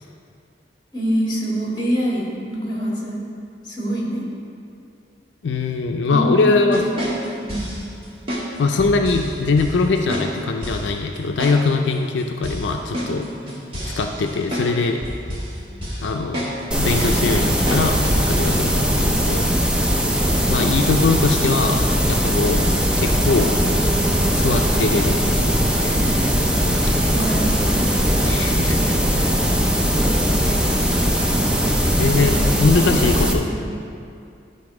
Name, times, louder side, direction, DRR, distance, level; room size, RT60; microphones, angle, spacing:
voice 1, 0.9-3.2 3.6-4.3 6.1-7.1 7.4-7.7 20.3-21.1 25.7-26.4 26.7-28.0 32.1-32.6 32.8-33.0 33.3-33.7, equal, 25° left, -4 dB, 2.0 m, -26 dB
voice 2, 5.4-6.8 8.6-13.3 13.8-15.0 16.0-16.5 16.8-19.5 20.5-22.7 23.0-23.5 24.3-25.7 26.7-27.3 28.2-28.8 29.1-29.3 32.0-33.4, left 3 dB, 85° left, 3 dB, 0.4 m, -22 dB
sound 1, 6.7-7.8 8.3-8.5 8.8-9.3 9.6-9.7 10.1-10.3 10.6-10.9 11.4-11.6 11.9-12.0 12.4-14.7 15.0-15.5 15.8-16.1 16.3-16.6 16.9-17.2 17.7-17.9 18.2-18.7, equal, 30° right, 1.7 m, -28 dB
sound 2, 16.7-33.3, equal, 5° right, 0.6 m, -19 dB
11.5 x 4.2 x 4.8 m, 2.5 s
head